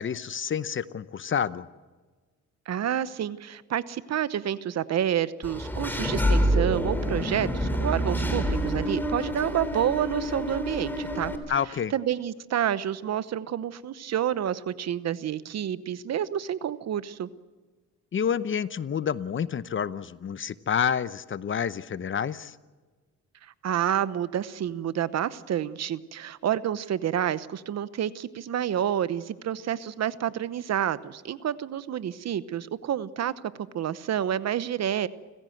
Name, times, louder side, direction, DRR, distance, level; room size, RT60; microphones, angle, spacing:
voice 1, 0.0-1.7 11.5-11.9 18.1-22.6, left 7 dB, 40° left, 15 dB, 0.8 m, -29 dB
voice 2, 2.7-11.3 11.9-17.3 23.6-33.3 33.6-35.1, right 10 dB, 60° right, 15 dB, 1.0 m, -29 dB
Engine / Mechanisms, 5.4-11.4, equal, 5° left, 3.4 m, -27 dB
29.5 x 15.5 x 7.9 m, 1.4 s
cardioid pair, 90°, 30 cm